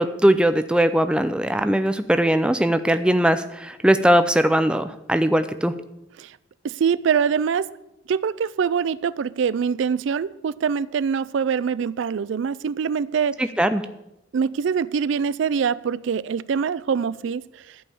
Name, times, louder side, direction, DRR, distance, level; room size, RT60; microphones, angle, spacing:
voice 1, 0.0-5.7 13.4-13.9, right 1 dB, 5° right, 10 dB, 0.5 m, -20 dB
voice 2, 6.6-7.7 8.1-13.4 14.3-17.8, right 6 dB, 70° right, 18 dB, 0.4 m, -24 dB
11.5 x 5.4 x 8.4 m, 0.89 s
head